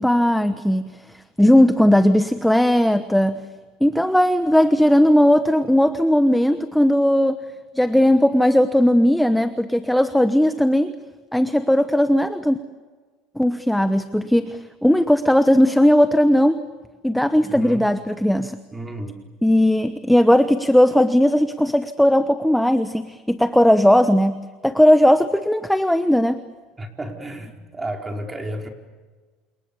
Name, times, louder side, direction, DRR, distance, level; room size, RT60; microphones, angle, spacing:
voice 1, 0.0-3.5 3.8-7.4 7.7-10.9 11.3-12.6 13.4-16.6 17.0-18.6 19.4-26.4, equal, ahead, 10 dB, 1.1 m, -17 dB
voice 2, 17.5-17.9 18.7-19.2 26.8-28.7, right 1 dB, 15° right, 3 dB, 4.5 m, -32 dB
29.5 x 28.0 x 7.0 m, 1.4 s
supercardioid pair, 125°, 0 cm